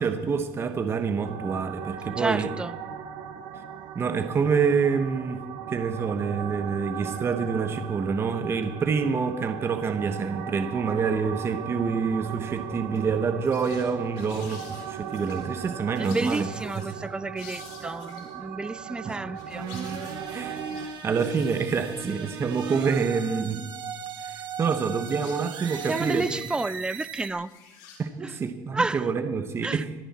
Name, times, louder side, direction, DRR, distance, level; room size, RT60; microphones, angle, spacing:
voice 1, 0.0-2.5 3.9-16.5 16.8-16.9 19.0-19.2 19.7-19.8 20.3-23.7 24.2-26.3 28.0-29.9, right 5 dB, 25° right, 8 dB, 1.1 m, -27 dB
sound 1, 1.2-20.9, right 8 dB, 70° right, 1.4 m, -38 dB
voice 2, 2.2-2.7 16.0-19.7 25.9-27.5 28.2-28.3 28.7-29.1 29.6-29.8, right 2 dB, 10° right, 18 dB, 0.4 m, -30 dB
sound 2, 12.3-12.6 12.9-13.0 13.4-13.9 14.2-15.4 15.9-17.0 17.4-18.3 19.1-22.5 23.1-23.2 23.8-24.4 24.9-26.4 27.3-28.0, left 6 dB, 85° left, 4.4 m, -49 dB
sound 3, 19.5-27.3, right 6 dB, 50° right, 2.0 m, -37 dB
25.5 x 10.0 x 4.3 m, 1.2 s
cardioid pair, 135°, 10 cm